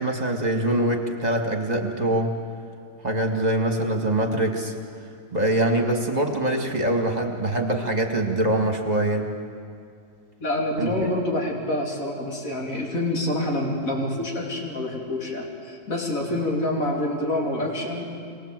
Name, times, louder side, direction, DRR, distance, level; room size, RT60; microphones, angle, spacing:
voice 1, 0.0-2.4 3.0-4.7 5.3-9.3 10.8-11.1, right 1 dB, 25° right, 2 dB, 1.9 m, -24 dB
voice 2, 10.4-18.1, left 1 dB, 50° left, -1 dB, 3.4 m, -27 dB
25.5 x 20.0 x 7.6 m, 2.3 s
omnidirectional pair, 1.8 m